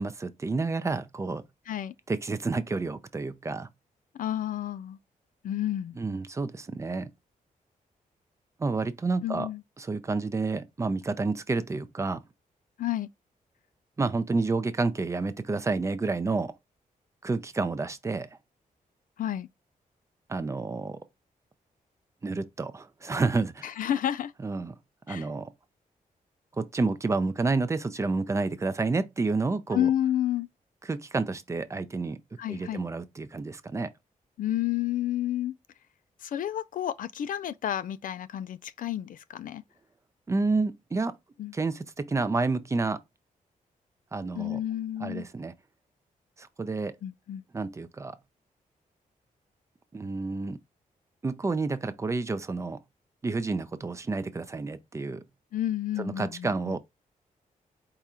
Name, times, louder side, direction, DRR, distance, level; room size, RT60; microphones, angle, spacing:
voice 1, 0.0-1.4 2.1-3.7 6.0-7.1 8.6-9.5 9.8-12.2 14.0-16.5 17.2-18.3 20.3-21.0 22.2-23.7 24.4-24.8 25.1-25.5 26.6-29.9 30.9-32.2 32.5-33.9 40.3-41.1 41.5-43.0 44.1-44.6 45.0-45.5 46.4-47.0 47.5-48.2 49.9-50.6 51.2-52.8 53.2-55.2 56.0-56.8, right 3 dB, 20° right, 0.4 m, -29 dB
voice 2, 4.1-5.0 5.4-6.0 9.2-9.6 12.8-13.1 19.2-19.5 23.6-24.3 25.1-25.3 29.7-30.5 32.4-32.8 34.4-35.5 36.2-39.6 41.4-41.5 44.4-45.2 47.0-47.4 55.5-56.8, left 11 dB, 70° left, 0.4 m, -30 dB
4.8 x 2.4 x 4.2 m
wide cardioid pair, 175°, 15 cm